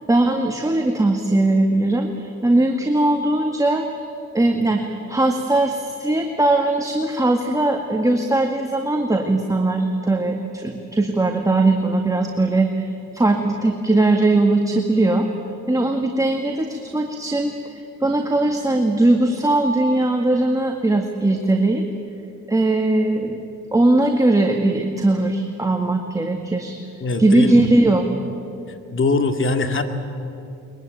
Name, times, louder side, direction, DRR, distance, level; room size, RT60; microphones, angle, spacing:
voice 1, 0.1-3.9 4.3-15.3 15.7-21.9 22.5-23.4 23.7-26.7 27.2-28.2, right 2 dB, 10° right, 3 dB, 1.9 m, -19 dB
voice 2, 27.0-27.7 28.7-29.8, left 3 dB, 40° left, 6 dB, 2.3 m, -22 dB
22.5 x 22.5 x 9.2 m, 2.6 s
cardioid pair, 90°, 30 cm